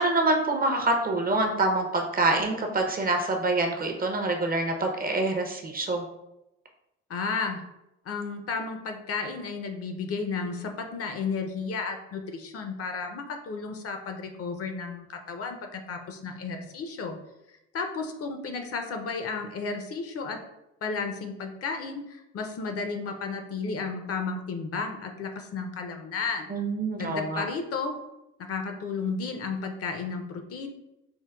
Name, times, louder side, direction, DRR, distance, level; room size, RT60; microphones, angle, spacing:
voice 1, 0.0-6.0 26.5-27.4, right 2 dB, 30° right, 3 dB, 0.5 m, -26 dB
voice 2, 7.1-7.6 8.1-17.2 17.7-20.4 20.8-26.5 27.0-27.9 28.4-30.7, left 4 dB, 50° left, 5 dB, 0.5 m, -33 dB
4.4 x 2.0 x 2.2 m, 0.89 s
cardioid pair, 90°, 30 cm